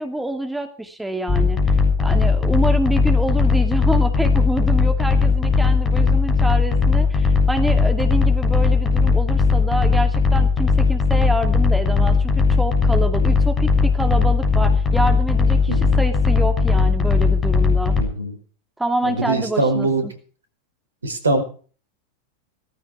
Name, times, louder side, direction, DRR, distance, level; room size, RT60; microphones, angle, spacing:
voice 1, 0.0-1.6 2.0-17.9 18.8-20.1, right 1 dB, 5° right, 6 dB, 2.3 m, -26 dB
sound 1, 1.3-18.0, left 4 dB, 20° left, 7.5 m, -17 dB
voice 2, 15.7-16.0 18.0-18.3 19.0-20.0 21.0-21.4, right 2 dB, 75° right, 9 dB, 4.6 m, -22 dB
18.5 x 14.5 x 4.7 m, 0.41 s
figure-of-eight pair, 90°, 0 cm